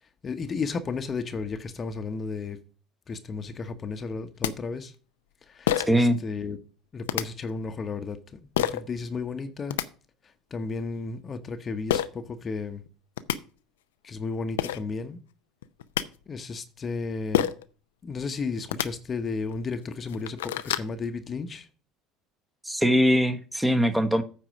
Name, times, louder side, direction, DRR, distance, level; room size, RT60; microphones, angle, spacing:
voice 1, 0.2-2.6 3.1-4.9 5.5-6.6 6.9-9.8 10.5-12.8 14.0-15.2 16.3-17.5 18.0-21.7, left 4 dB, 35° left, 1.0 m, -33 dB
sound 1, 4.1-4.2 4.4-4.5 5.7-6.0 7.1-7.2 8.6-8.8 9.5-9.9 11.9-12.1 12.9-13.0 13.2-13.4 14.3-14.4 14.6-14.8 15.6-16.0 17.3-17.7 18.6-18.9 19.5-19.6 20.0-20.9, left 11 dB, 80° left, 0.5 m, -26 dB
voice 2, 5.9-6.2 22.6-24.2, equal, 5° right, 1.2 m, -21 dB
9.0 x 4.7 x 7.0 m
hypercardioid pair, 70°, 0 cm